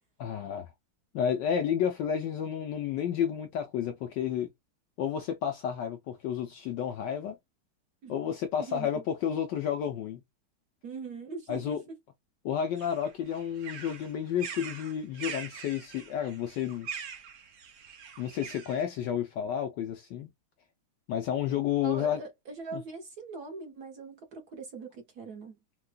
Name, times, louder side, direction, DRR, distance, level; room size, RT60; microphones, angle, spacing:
voice 1, 0.2-0.7 1.1-4.5 5.0-7.3 8.1-10.2 11.5-11.8 12.4-16.9 18.2-20.3 21.1-22.2 22.7-22.8, left 9 dB, 70° left, 1.1 m, -31 dB
voice 2, 8.6-8.9 10.8-11.8 21.8-25.5, right 4 dB, 55° right, 1.3 m, -41 dB
sound 1, 12.8-18.8, right 6 dB, 70° right, 0.7 m, -43 dB
4.5 x 2.3 x 2.2 m
omnidirectional pair, 2.4 m